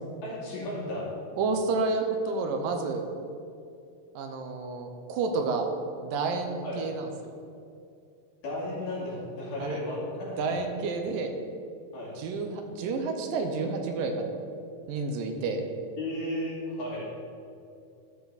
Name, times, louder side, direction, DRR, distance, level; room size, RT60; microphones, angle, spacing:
voice 1, 0.2-1.1 6.6-6.8 8.4-10.6 11.9-12.2 16.0-17.1, left 1 dB, 60° left, -7 dB, 3.8 m, -34 dB
voice 2, 1.4-3.0 4.2-5.7 6.0-7.3 9.6-9.8 10.4-11.3 12.2-14.3 14.9-15.6, right 4 dB, 80° right, 4 dB, 2.5 m, -30 dB
13.0 x 5.7 x 4.1 m, 2.5 s
omnidirectional pair, 4.0 m